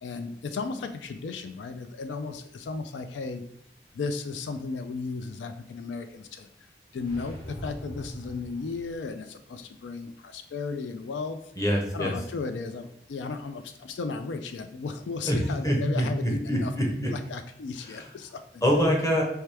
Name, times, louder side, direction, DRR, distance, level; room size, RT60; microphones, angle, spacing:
voice 1, 0.0-3.4 3.9-6.5 6.9-11.4 11.9-16.7 17.1-18.6, left 4 dB, 90° left, 9 dB, 0.4 m, -35 dB
sound 1, 6.9-9.1, equal, 65° left, 1.9 m, -42 dB
voice 2, 11.6-12.1 15.2-15.4 15.6-16.1 16.5-17.1 18.6-19.2, equal, 20° left, -1 dB, 0.9 m, -24 dB
4.6 x 3.3 x 3.3 m, 0.73 s
head